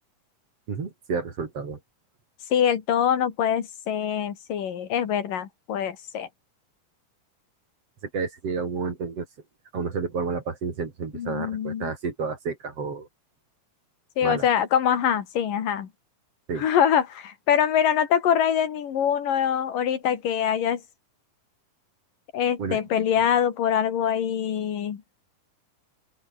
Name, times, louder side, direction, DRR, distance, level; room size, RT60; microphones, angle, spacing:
voice 1, 0.7-1.8 8.1-9.3 9.7-13.1 14.2-14.5 16.5-16.6 22.6-22.8, right 5 dB, 45° right, 4.0 m, -30 dB
voice 2, 2.5-6.3 11.1-11.9 14.2-15.9 16.6-20.8 22.3-25.0, left 9 dB, 75° left, 3.8 m, -24 dB
open air
omnidirectional pair, 4.0 m